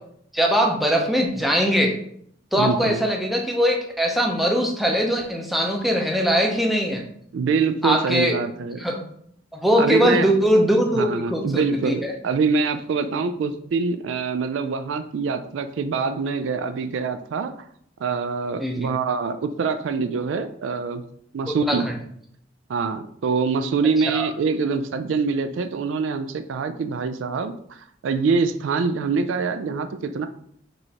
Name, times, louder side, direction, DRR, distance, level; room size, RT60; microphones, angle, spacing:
voice 1, 0.3-1.9 2.5-7.0 7.8-8.3 8.8-9.0 9.5-12.1 18.6-18.9 21.5-22.0 24.1-24.3, equal, ahead, 1 dB, 0.6 m, -21 dB
voice 2, 2.5-3.0 7.3-8.8 9.8-10.3 10.9-17.5 18.0-21.0 21.3-21.9 22.7-30.3, right 4 dB, 70° right, 9 dB, 0.3 m, -25 dB
5.2 x 3.1 x 2.8 m, 0.66 s
head